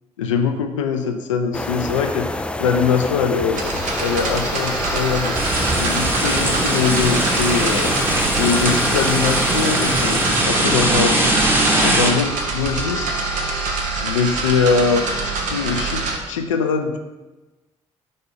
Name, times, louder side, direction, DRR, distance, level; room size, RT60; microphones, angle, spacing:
voice 1, 0.2-3.6 4.0-5.3 5.7-8.0 8.4-11.2 11.8-13.1 13.9-15.1 15.5-17.0, left 5 dB, 80° left, 6 dB, 0.5 m, -22 dB
sound 1, 1.5-10.4, left 2 dB, 5° left, 0.3 m, -28 dB
sound 2, 3.5-16.2, right 3 dB, 55° right, 1.0 m, -25 dB
sound 3, 5.3-12.1, right 1 dB, 15° right, 1.3 m, -20 dB
5.3 x 4.4 x 5.0 m, 1.1 s
figure-of-eight pair, 45°, 16 cm